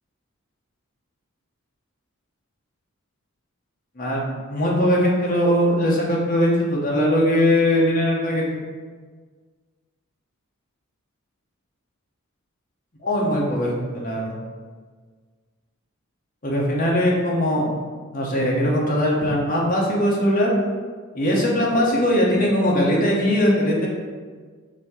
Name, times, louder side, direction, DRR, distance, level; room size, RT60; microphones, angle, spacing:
voice 1, 4.0-8.6 13.0-14.3 16.4-17.7 18.1-20.5 21.1-23.9, equal, 40° left, -3 dB, 0.8 m, -20 dB
4.2 x 2.6 x 4.2 m, 1.5 s
head